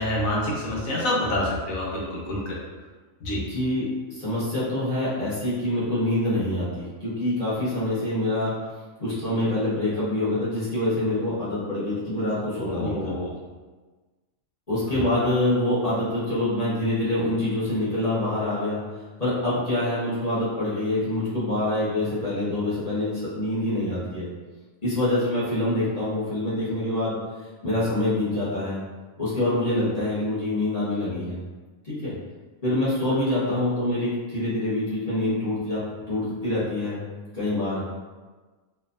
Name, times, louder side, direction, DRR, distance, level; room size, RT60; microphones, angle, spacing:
voice 1, 0.0-2.6 3.2-3.4 12.6-13.3 14.9-15.0, left 1 dB, 75° left, -5 dB, 1.3 m, -27 dB
voice 2, 3.5-8.5 9.0-13.1 14.7-18.8 19.2-24.3 24.8-27.2 27.6-28.8 29.2-31.4 31.8-32.1 32.6-35.8 36.1-37.0 37.3-37.8, left 1 dB, 30° left, -10 dB, 1.1 m, -25 dB
4.4 x 2.6 x 2.6 m, 1.3 s
omnidirectional pair, 1.5 m